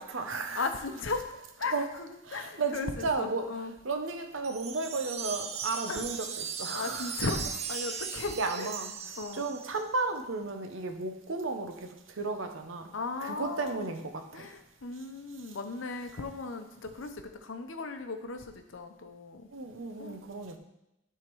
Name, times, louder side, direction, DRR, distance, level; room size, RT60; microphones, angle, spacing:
voice 1, 0.0-0.7 1.7-1.9 2.2-3.5 3.8-7.1 8.4-12.9 13.2-14.5 19.5-20.6, right 3 dB, 85° right, 6 dB, 0.8 m, -34 dB
voice 2, 0.6-3.7 5.9-6.1 6.7-8.7 9.2-9.5 12.9-13.9 14.3-19.5 20.0-20.2, left 3 dB, 80° left, 7 dB, 0.7 m, -37 dB
Wind chime, 4.4-9.8, right 7 dB, 30° right, 0.4 m, -38 dB
10.5 x 3.6 x 4.6 m, 0.89 s
head